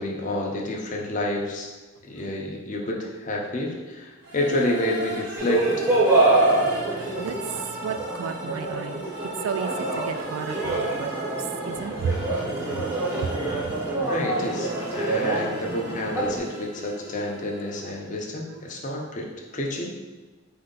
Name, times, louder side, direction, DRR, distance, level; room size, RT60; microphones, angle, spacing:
voice 1, 0.0-1.7 2.0-5.9 14.1-20.0, left 1 dB, 35° left, -1 dB, 0.6 m, -29 dB
sound 1, 4.2-18.1, right 1 dB, 55° right, 0.8 m, -38 dB
sound 2, 5.4-16.4, right 2 dB, 10° right, 0.7 m, -26 dB
voice 2, 6.3-11.1 11.4-14.1 17.8-17.9 18.5-19.1, right 6 dB, 80° right, 9 dB, 0.3 m, -34 dB
4.3 x 2.7 x 3.8 m, 1.3 s
head